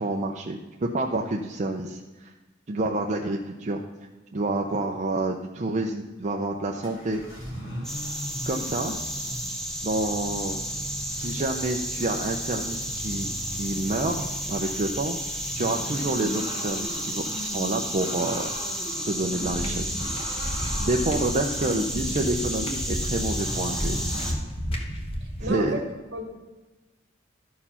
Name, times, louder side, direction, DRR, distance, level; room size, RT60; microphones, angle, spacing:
voice 1, 0.0-2.3 2.7-3.8 4.3-7.2 8.4-9.0 9.8-10.6 11.1-18.5 19.1-20.0 20.8-24.1 25.4-25.8, right 2 dB, 40° right, 1 dB, 0.6 m, -28 dB
sound 1, 6.1-6.4 6.8-24.3, equal, 75° left, 3.6 m, -39 dB
sound 2, 7.8-24.3, equal, 5° left, 1.2 m, -32 dB
sound 3, 19.4-25.6, equal, 30° left, 1.3 m, -32 dB
voice 2, 25.4-25.8 26.1-26.2, right 2 dB, 65° right, 3 dB, 1.9 m, -31 dB
12.5 x 4.8 x 5.6 m, 1.2 s
head